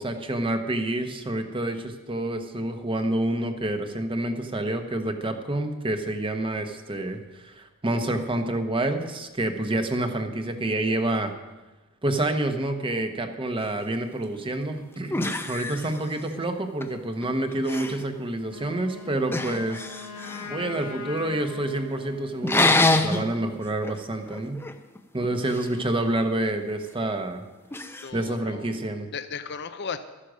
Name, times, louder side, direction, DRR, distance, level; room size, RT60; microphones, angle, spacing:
voice 1, 0.0-11.3 12.0-19.9 20.5-24.6 25.1-27.4 28.1-29.1, right 1 dB, 25° right, 6 dB, 1.1 m, -28 dB
sound 1, 14.4-14.5 15.1-16.4 16.8-17.3 17.5-18.0 19.3-20.5 22.4-23.3 23.7-24.0 24.3-25.7 27.7-28.1, left 2 dB, 10° left, 0.7 m, -26 dB
Wind instrument woodwind instrument, 18.4-22.6, left 5 dB, 80° left, 2.1 m, -40 dB
voice 2, 27.9-28.7 29.1-30.0, left 6 dB, 50° left, 10 dB, 0.7 m, -36 dB
13.0 x 9.9 x 6.3 m, 1.1 s
head